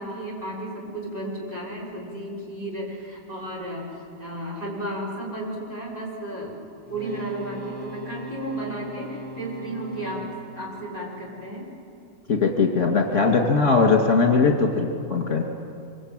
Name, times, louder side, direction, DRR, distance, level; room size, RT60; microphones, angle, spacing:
voice 1, 0.0-3.9 4.2-6.6 6.9-11.7, right 1 dB, 25° right, -4 dB, 6.4 m, -33 dB
sound 1, 6.9-11.9 14.7-14.8, equal, 5° left, 3.8 m, -40 dB
voice 2, 12.3-15.4, left 4 dB, 55° left, 2 dB, 2.7 m, -20 dB
25.5 x 25.0 x 9.1 m, 2.4 s
omnidirectional pair, 1.5 m